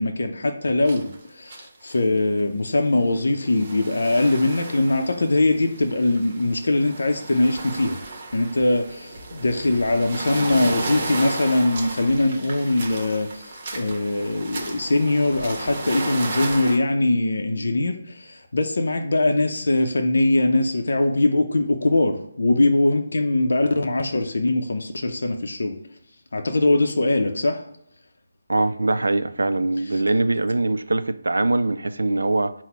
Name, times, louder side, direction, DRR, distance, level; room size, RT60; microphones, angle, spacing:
voice 1, 0.0-8.0 8.3-25.8 26.3-27.6 29.9-30.0, left 2 dB, 70° left, 0.5 m, -22 dB
sound 1, 0.9-1.2 1.5-2.0 2.4-2.5 3.2-16.8, right 2 dB, 40° right, 0.9 m, -34 dB
voice 2, 28.5-32.5, right 2 dB, 80° right, 0.3 m, -22 dB
4.0 x 2.1 x 4.5 m
figure-of-eight pair, 155°, 0 cm